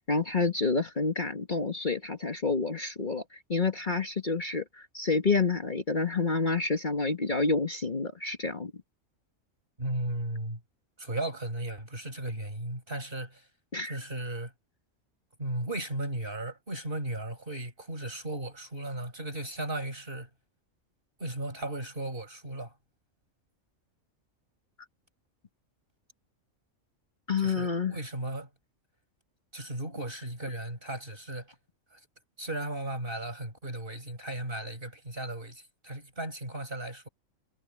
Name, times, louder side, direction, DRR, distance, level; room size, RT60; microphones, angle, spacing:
voice 1, 0.0-8.7 13.7-14.0 27.3-27.9, left 4 dB, 35° left, 1.7 m, -28 dB
voice 2, 9.8-10.6 11.0-13.5 13.8-14.5 15.4-20.3 21.2-22.7 27.4-28.5 29.5-31.5 31.9-32.0 32.4-37.1, right 1 dB, 45° right, 7.0 m, -36 dB
omnidirectional pair, 1.4 m